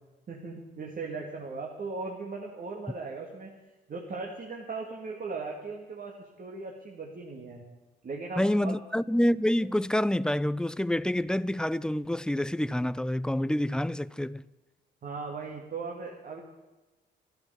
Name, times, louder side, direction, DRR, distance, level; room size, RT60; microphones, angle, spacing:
voice 1, 0.3-3.5 3.9-7.6 8.0-8.8 15.0-16.4, right 4 dB, 45° right, 2.3 m, -38 dB
voice 2, 8.4-14.4, left 1 dB, 5° left, 0.4 m, -27 dB
13.5 x 13.0 x 7.0 m
cardioid pair, 90°, 20 cm